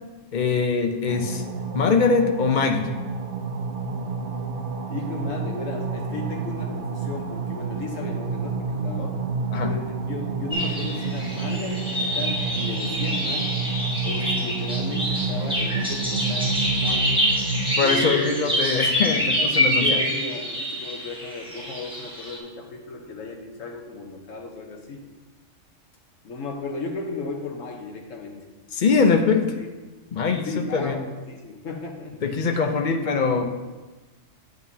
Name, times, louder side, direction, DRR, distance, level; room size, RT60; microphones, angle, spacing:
voice 1, 0.3-1.4 1.7-2.9 9.5-9.7 17.8-20.0 28.7-29.4 30.1-31.0 32.2-33.4, left 5 dB, 50° left, 5 dB, 0.6 m, -22 dB
sound 1, 1.1-17.7, right 4 dB, 50° right, 0.7 m, -29 dB
voice 2, 4.9-9.3 9.6-13.7 14.0-17.2 17.7-18.3 19.1-25.1 26.2-28.4 28.9-29.2 29.6-29.7 30.4-32.2, left 3 dB, 90° left, 2 dB, 1.4 m, -35 dB
sound 2, 10.5-22.4, equal, 5° right, 1.5 m, -26 dB
9.0 x 8.0 x 2.8 m, 1.2 s
omnidirectional pair, 1.3 m